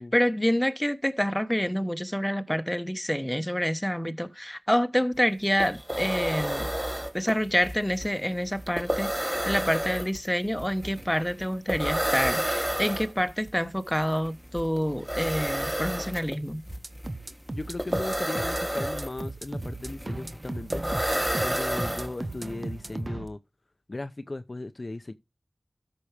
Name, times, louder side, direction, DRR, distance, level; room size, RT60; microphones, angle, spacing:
voice 1, 0.0-6.7 7.1-16.6, equal, 5° left, 1.1 m, -27 dB
sound 1, 5.1-5.2 5.4-22.5, right 1 dB, 15° right, 1.8 m, -31 dB
sound 2, 16.7-23.3, right 2 dB, 45° right, 0.9 m, -36 dB
voice 2, 17.5-20.8 21.4-23.4 23.9-25.1, left 2 dB, 45° left, 0.6 m, -37 dB
13.5 x 6.1 x 3.3 m
wide cardioid pair, 60°, 0 cm